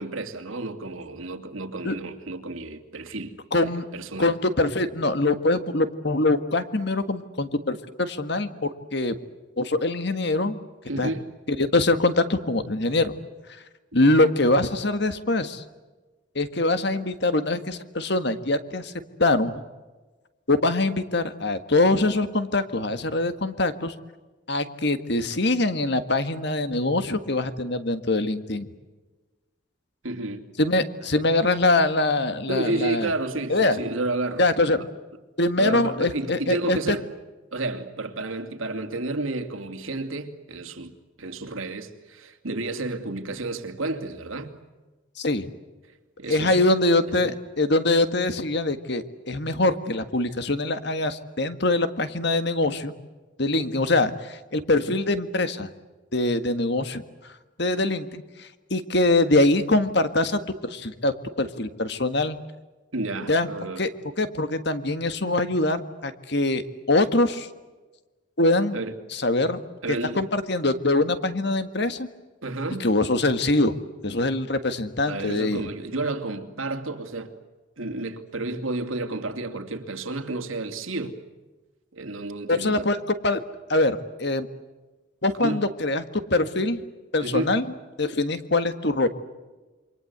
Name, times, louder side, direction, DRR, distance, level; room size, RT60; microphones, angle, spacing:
voice 1, 0.0-4.3 10.9-11.3 30.0-30.5 32.5-34.4 34.8-34.9 35.6-37.1 37.5-40.9 41.2-44.5 46.2-46.6 47.2-47.3 62.9-63.8 68.7-68.9 69.8-70.2 72.4-72.9 75.1-77.3 77.8-81.2 81.9-82.8 85.4-85.6 87.2-87.5, right 2 dB, 80° right, 2.6 m, -31 dB
voice 2, 3.5-3.9 4.2-9.2 9.6-10.6 11.0-11.1 11.5-13.1 13.9-15.6 16.4-18.9 19.2-19.6 20.5-23.9 24.5-28.7 30.6-33.1 33.5-33.8 34.4-34.8 35.4-37.0 45.2-45.5 46.3-52.9 53.4-55.7 56.1-57.0 57.6-62.4 63.3-63.5 63.8-63.9 64.2-67.5 68.4-68.8 69.1-69.6 69.9-72.1 72.8-73.7 74.0-75.6 82.5-83.0 83.2-83.4 83.7-84.5 85.2-86.0 86.3-86.8 87.1-87.6 88.0-89.1, left 2 dB, 55° left, 1.7 m, -23 dB
28.0 x 24.5 x 8.1 m
head